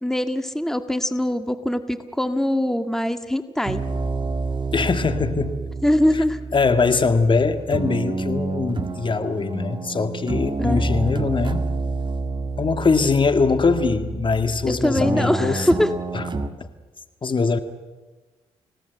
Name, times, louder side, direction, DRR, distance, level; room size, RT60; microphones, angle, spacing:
voice 1, 0.0-3.8 5.8-6.4 10.6-10.9 14.6-15.9, left 1 dB, 5° left, 8 dB, 1.8 m, -22 dB
sound 1, 3.7-16.5, right 3 dB, 40° right, 1.7 m, -28 dB
voice 2, 4.7-5.6 6.1-6.2 6.5-11.7 12.6-15.7 16.1-16.2 16.6-16.7 17.2-17.6, left 4 dB, 40° left, 9 dB, 1.9 m, -22 dB
30.0 x 17.5 x 8.0 m, 1.3 s
supercardioid pair, 60°, 12 cm